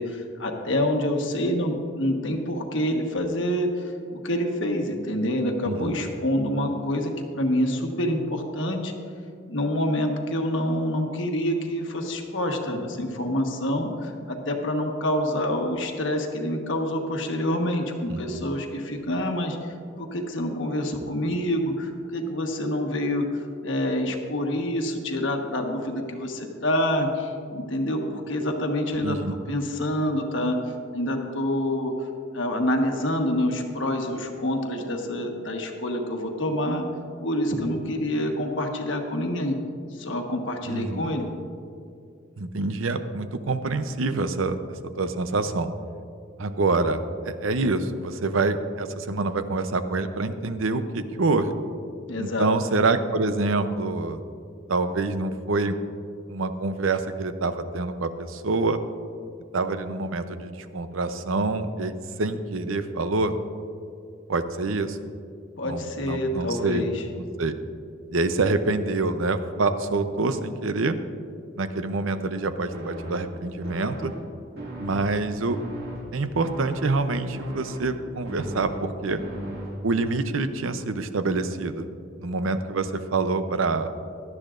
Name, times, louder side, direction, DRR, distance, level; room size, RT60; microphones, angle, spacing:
voice 1, 0.0-8.9 9.5-19.6 20.0-30.6 30.9-32.1 32.3-36.8 37.2-39.6 39.9-41.3 52.1-52.5 65.6-67.0, left 1 dB, 65° left, 3 dB, 1.3 m, -27 dB
voice 2, 5.6-6.0 18.1-18.4 29.0-29.3 40.7-41.1 42.4-45.7 46.4-47.0 47.2-51.5 52.2-54.2 54.7-55.7 56.3-58.8 59.5-63.3 64.3-65.0 65.6-66.9 67.2-67.6 68.1-71.0 71.5-74.1 74.8-75.6 76.1-79.2 79.8-81.9 82.2-83.9, right 3 dB, 85° right, 10 dB, 0.7 m, -26 dB
sound 1, 72.7-80.1, equal, 50° right, 2.1 m, -37 dB
17.0 x 12.0 x 2.5 m, 2.4 s
head